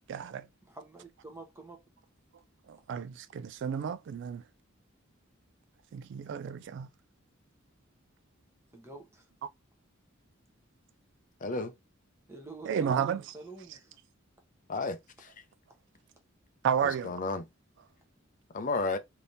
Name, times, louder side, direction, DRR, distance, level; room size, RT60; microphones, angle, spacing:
voice 1, 0.1-0.5 2.7-4.4 5.9-6.9 12.7-13.2 16.6-17.2, right 7 dB, 60° right, 0.3 m, -32 dB
voice 2, 0.6-1.8 8.7-9.3 12.3-14.0, right 3 dB, 15° right, 0.9 m, -47 dB
voice 3, 11.4-11.7 14.7-15.3 16.8-17.5 18.5-19.0, left 3 dB, 40° left, 0.5 m, -33 dB
3.4 x 2.8 x 2.6 m
head